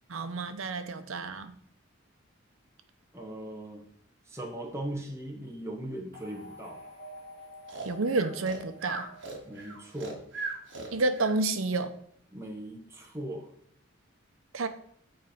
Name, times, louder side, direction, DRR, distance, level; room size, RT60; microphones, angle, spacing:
voice 1, 0.1-1.6 7.8-9.0 10.9-11.9 14.5-14.7, right 3 dB, 85° right, 10 dB, 0.7 m, -29 dB
voice 2, 3.1-3.8 4.3-6.8 9.5-10.2 12.3-13.5, right 1 dB, 15° right, -1 dB, 1.0 m, -39 dB
sound 1, 6.1-10.4, right 1 dB, 40° right, 2.5 m, -49 dB
Breathing, 7.7-11.4, right 3 dB, 65° right, 1.6 m, -38 dB
8.0 x 4.2 x 5.1 m, 0.68 s
head